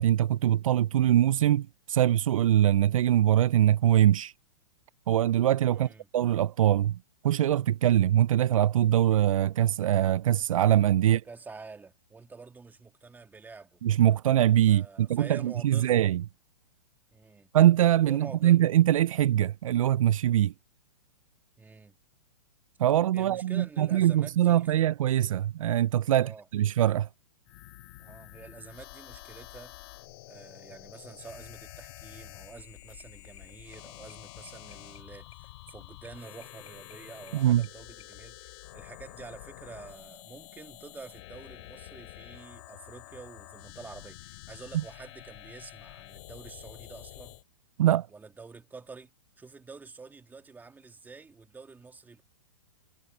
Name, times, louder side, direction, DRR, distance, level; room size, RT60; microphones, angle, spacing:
voice 1, 0.0-4.3 5.1-7.0 7.2-11.2 13.8-16.2 17.5-20.5 22.8-27.1 37.3-37.6 47.8-48.1, right 12 dB, 65° right, 0.5 m, -23 dB
voice 2, 5.7-6.1 11.0-13.8 14.7-16.0 17.1-17.5 18.0-18.6 21.6-22.0 23.1-24.8 26.1-26.4 28.0-29.7 30.3-47.4 48.1-49.1 49.4-52.2, right 4 dB, 10° right, 2.7 m, -48 dB
sound 1, 27.5-47.4, left 19 dB, 50° left, 7.5 m, -48 dB
sound 2, 31.0-38.2, left 9 dB, 70° left, 6.8 m, -61 dB
hypercardioid pair, 125°, 18 cm